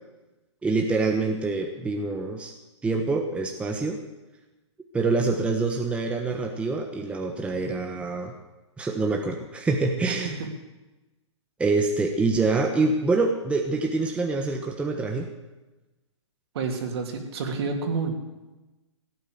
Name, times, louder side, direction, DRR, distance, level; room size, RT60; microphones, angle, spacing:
voice 1, 0.6-2.5 2.8-4.0 4.9-8.3 8.8-10.4 11.6-15.3, right 3 dB, 5° right, 2 dB, 1.1 m, -25 dB
voice 2, 16.5-18.1, right 4 dB, 55° right, 3 dB, 3.2 m, -29 dB
16.5 x 9.1 x 8.0 m, 1.1 s
hypercardioid pair, 135°, 16 cm